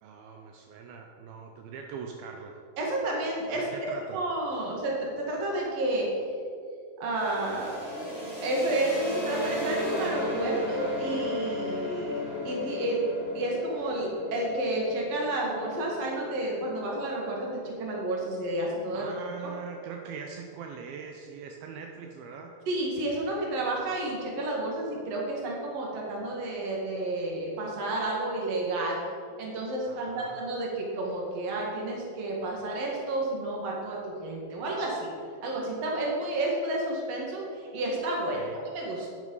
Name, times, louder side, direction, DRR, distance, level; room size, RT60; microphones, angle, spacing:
voice 1, 0.0-2.6 3.5-4.2 4.6-4.7 18.9-22.5 29.9-30.4 38.3-38.6, right 6 dB, 80° right, 3 dB, 2.3 m, -42 dB
voice 2, 2.8-3.6 4.1-6.1 7.0-7.8 8.4-13.0 13.3-19.1 22.7-29.0 29.4-35.1 35.4-38.4 38.7-39.1, right 1 dB, 50° right, -2 dB, 2.4 m, -31 dB
sound 1, 7.1-18.8, left 1 dB, 30° right, 1.2 m, -36 dB
10.5 x 6.4 x 5.4 m, 2.3 s
omnidirectional pair, 4.6 m